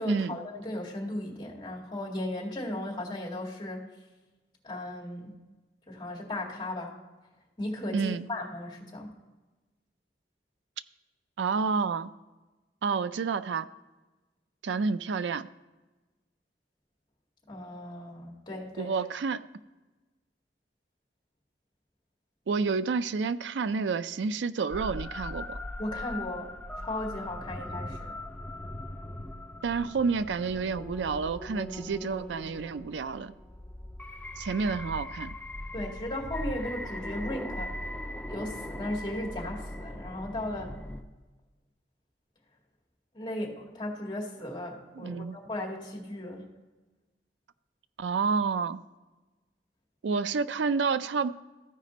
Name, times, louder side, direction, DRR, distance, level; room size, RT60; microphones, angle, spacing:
voice 1, 0.0-3.8 4.6-5.4 5.9-7.0 7.6-9.1 17.5-18.9 25.8-28.1 35.7-37.7 38.3-40.7 43.1-46.5, left 1 dB, 25° left, -3 dB, 2.1 m, -36 dB
voice 2, 7.9-8.2 11.4-12.1 12.8-13.7 14.6-15.5 18.8-19.4 22.5-25.6 29.6-33.3 34.4-35.3 45.0-45.4 48.0-48.8 50.0-51.3, right 5 dB, 85° right, 14 dB, 0.4 m, -29 dB
sound 1, 24.7-41.0, left 1 dB, 10° left, 0.4 m, -40 dB
14.0 x 5.0 x 4.1 m, 1.2 s
head